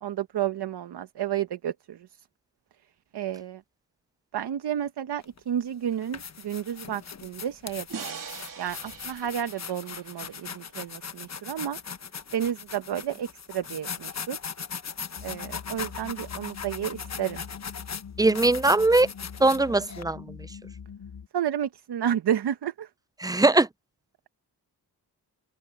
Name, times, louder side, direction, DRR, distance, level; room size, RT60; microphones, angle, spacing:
voice 1, 0.0-2.0 3.1-3.6 4.3-8.2 8.6-11.8 12.3-14.4 15.2-17.4 21.3-22.9, right 10 dB, 70° right, 0.9 m, -31 dB
sound 1, 5.2-5.4 5.9-20.0, left 6 dB, 40° left, 1.1 m, -39 dB
sound 2, 7.9-11.1, right 6 dB, 50° right, 2.8 m, -42 dB
sound 3, 15.2-21.3, left 7 dB, 60° left, 5.8 m, -43 dB
voice 2, 18.2-19.1 19.4-20.2 23.2-23.7, right 2 dB, 10° right, 0.3 m, -20 dB
open air
wide cardioid pair, 120°, 41 cm